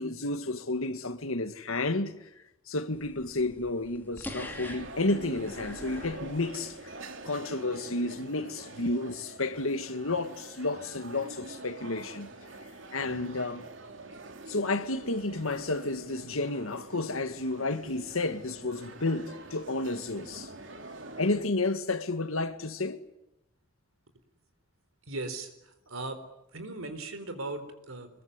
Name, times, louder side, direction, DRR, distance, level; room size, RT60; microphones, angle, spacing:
voice 1, 0.0-2.2 2.7-6.9 7.2-12.3 12.9-13.7 14.5-20.5 21.2-23.0, left 2 dB, 90° left, 1.8 m, -31 dB
sound 1, 2.9-7.0, left 1 dB, 10° left, 2.3 m, -45 dB
sound 2, 4.2-21.5, right 2 dB, 65° right, 2.7 m, -45 dB
voice 2, 25.1-25.5 25.9-26.2 26.5-28.1, right 2 dB, 90° right, 4.1 m, -37 dB
25.5 x 22.0 x 9.8 m
head